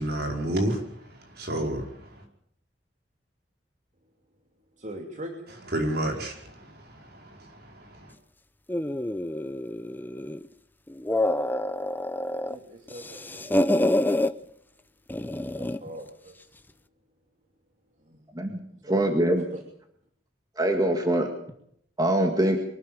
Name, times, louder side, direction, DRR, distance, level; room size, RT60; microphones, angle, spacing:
voice 1, 0.0-2.2 5.7-8.1, right 1 dB, 60° right, 4.9 m, -31 dB
voice 2, 4.8-5.7 12.4-14.2 15.4-16.6 18.0-19.0 19.5-19.6, right 1 dB, 45° right, 2.8 m, -43 dB
sound 1, 8.7-10.5 10.9-12.6 12.9-14.3 15.1-15.9, left 1 dB, 10° left, 0.7 m, -27 dB
voice 3, 18.9-19.5 20.6-21.3 22.0-22.6, right 1 dB, 20° right, 2.1 m, -23 dB
24.0 x 12.5 x 8.8 m
head